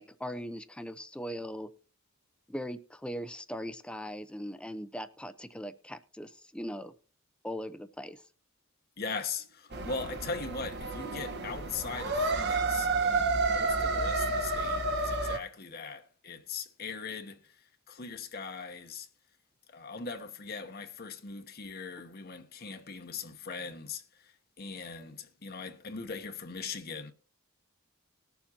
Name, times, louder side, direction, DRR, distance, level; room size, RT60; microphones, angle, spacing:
voice 1, 0.0-1.7 2.5-6.9 7.4-8.2, equal, 5° left, 0.6 m, -40 dB
voice 2, 9.0-17.6 17.9-19.1 19.7-27.1, left 5 dB, 50° left, 1.0 m, -40 dB
sound 1, 9.7-15.4, right 3 dB, 55° right, 1.1 m, -30 dB
20.0 x 7.2 x 2.9 m
head